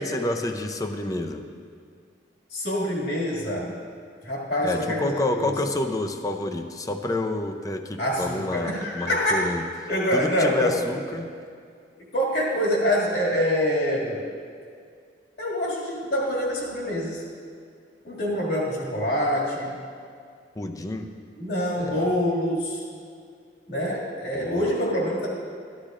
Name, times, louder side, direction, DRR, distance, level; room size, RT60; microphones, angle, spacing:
voice 1, 0.0-1.5 4.6-11.3 20.6-21.1 21.8-22.1 24.3-24.7, left 2 dB, 20° left, 5 dB, 0.5 m, -29 dB
voice 2, 2.5-3.7 4.2-5.5 8.0-9.5 9.9-10.7 12.1-14.2 15.4-17.2 18.0-19.8 21.4-22.8 23.7-25.3, equal, 65° left, -4 dB, 2.1 m, -25 dB
13.0 x 11.5 x 2.5 m, 2.2 s
head